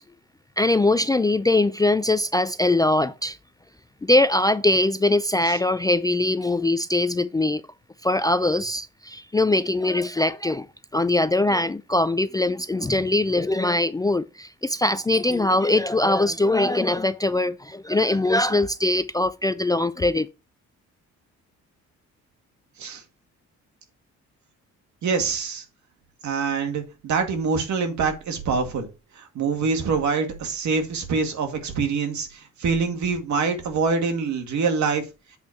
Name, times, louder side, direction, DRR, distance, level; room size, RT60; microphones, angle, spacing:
voice 1, 0.6-3.4 4.0-7.6 8.0-10.7 10.9-20.3, left 2 dB, 15° left, 0.3 m, -22 dB
voice 2, 25.0-25.6 26.2-28.9 29.2-35.0, right 5 dB, 70° right, 2.1 m, -25 dB
8.1 x 4.3 x 4.8 m
cardioid pair, 90°, 30 cm